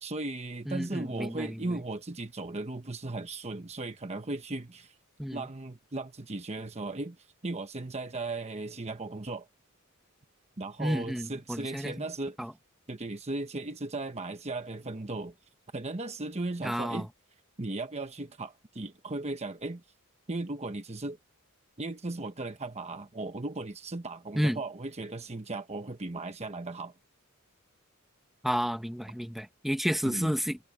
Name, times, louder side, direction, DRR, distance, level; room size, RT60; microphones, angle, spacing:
voice 1, 0.0-4.9 5.3-7.2 7.4-9.5 10.6-12.4 12.9-15.3 15.7-17.1 17.6-19.8 20.3-21.2 21.8-26.9 30.0-30.3, right 2 dB, 30° right, 1.0 m, -36 dB
voice 2, 0.7-1.8 5.2-5.5 10.8-12.0 12.4-12.5 16.6-17.1 24.3-24.6 28.4-30.6, equal, ahead, 1.5 m, -31 dB
head